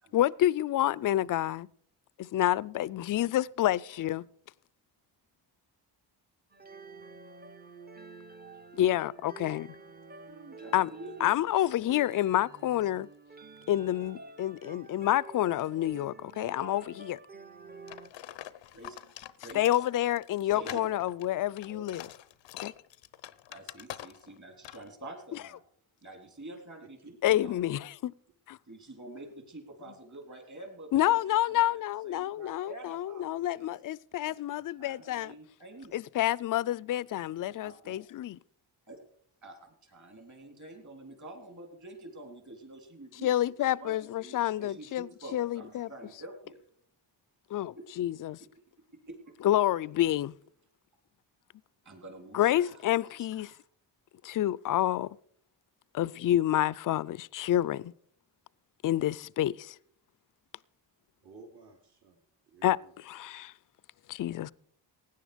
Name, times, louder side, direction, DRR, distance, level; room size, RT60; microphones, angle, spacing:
voice 1, 0.1-1.7 2.2-4.3 8.7-9.8 10.7-10.9 11.2-13.1 13.7-17.2 19.5-22.1 22.6-22.7 27.2-28.1 28.5-28.6 30.9-35.3 35.9-38.4 43.2-45.9 47.5-48.4 49.4-50.3 52.3-53.5 54.2-55.2 55.9-57.9 58.8-59.8 62.6-62.8 63.1-63.5 64.1-64.5, left 13 dB, 50° left, 0.4 m, -28 dB
sound 1, 6.5-18.1, right 4 dB, 20° right, 0.7 m, -49 dB
voice 2, 10.3-11.3 11.6-11.7 18.7-19.7 20.5-21.0 21.6-21.9 23.5-25.6 26.0-27.6 28.7-31.2 31.5-31.7 32.0-33.6 34.2-36.0 37.6-38.0 38.9-39.0 39.4-43.3 43.6-46.6 47.8-47.9 49.1-49.4 51.9-52.8 53.2-53.6, right 1 dB, 40° right, 3.5 m, -47 dB
sound 2, 17.9-24.4 24.6-24.9, left 13 dB, 90° left, 0.7 m, -45 dB
voice 3, 26.8-27.4 61.2-63.0, right 4 dB, 65° right, 2.9 m, -55 dB
16.5 x 9.8 x 5.1 m
cardioid pair, 80°, 44 cm